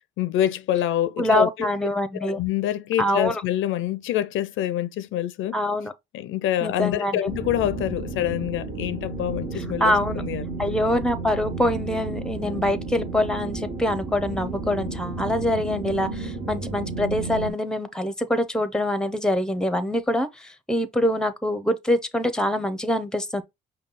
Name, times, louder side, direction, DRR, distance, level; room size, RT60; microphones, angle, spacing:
voice 1, 0.2-1.7 2.1-5.5 6.1-10.4 12.4-12.5, left 12 dB, 80° left, 0.5 m, -26 dB
voice 2, 1.2-2.4 3.0-3.4 5.5-5.9 6.6-7.2 9.8-10.2 10.6-23.4, left 1 dB, 5° left, 0.7 m, -24 dB
sound 1, 7.3-17.5, right 3 dB, 45° right, 1.7 m, -32 dB
5.2 x 2.3 x 4.0 m
cardioid pair, 90°, 20 cm